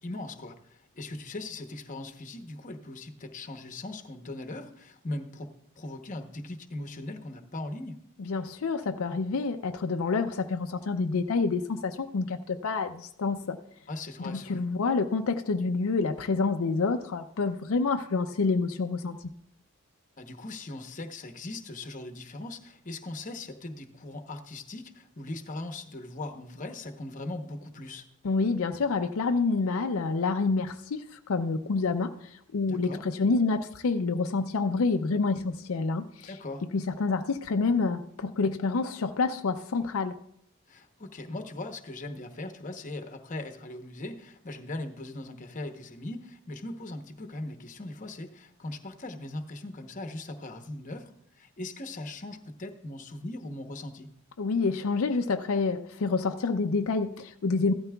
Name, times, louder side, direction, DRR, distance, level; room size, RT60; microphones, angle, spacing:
voice 1, 0.0-8.0 13.9-14.6 20.2-28.1 32.7-33.0 36.2-36.6 40.7-54.1, left 2 dB, 35° left, 6 dB, 0.8 m, -39 dB
voice 2, 8.3-13.6 14.2-19.2 28.2-36.3 36.7-40.2 54.4-57.7, left 4 dB, 70° left, 6 dB, 0.5 m, -28 dB
15.0 x 12.5 x 2.3 m, 0.71 s
head